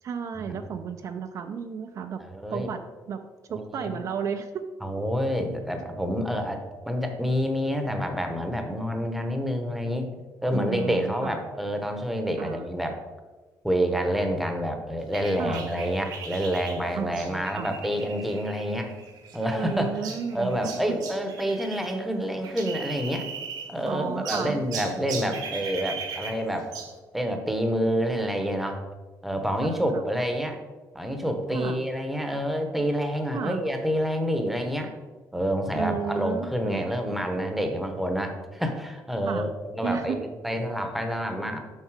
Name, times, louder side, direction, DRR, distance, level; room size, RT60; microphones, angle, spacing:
voice 1, 0.0-2.2 2.5-2.8 3.1-3.2 3.5-4.6 10.5-11.5 12.4-12.7 15.4-15.7 17.0-17.9 19.5-21.0 23.9-24.6 29.6-30.0 31.5-31.9 33.3-33.7 35.7-36.9 39.3-39.5 39.8-40.2, right 7 dB, 50° right, 7 dB, 0.5 m, -33 dB
voice 2, 2.2-2.7 3.5-4.0 4.8-10.1 10.4-13.0 13.6-18.9 19.3-19.9 20.3-23.3 23.7-26.7 27.1-28.8 29.2-30.6 30.9-34.9 35.3-41.6, equal, ahead, 5 dB, 0.9 m, -28 dB
sound 1, 15.1-22.0 22.2-23.9 24.2-27.0, right 5 dB, 75° right, 1.4 m, -38 dB
7.3 x 5.4 x 4.7 m, 1.2 s
cardioid pair, 145°, 7 cm